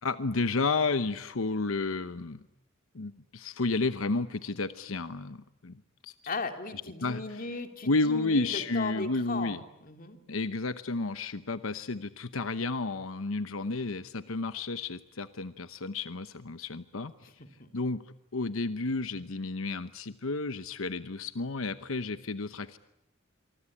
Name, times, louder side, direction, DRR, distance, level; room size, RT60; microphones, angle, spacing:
voice 1, 0.0-2.4 2.9-6.1 7.0-7.5 7.8-9.6 10.3-17.1 17.7-18.0 18.3-22.8, left 3 dB, 90° left, 12 dB, 0.9 m, -31 dB
voice 2, 6.3-10.2 17.6-17.7, left 3 dB, 45° left, 6 dB, 2.7 m, -37 dB
27.5 x 24.0 x 8.6 m, 0.87 s
head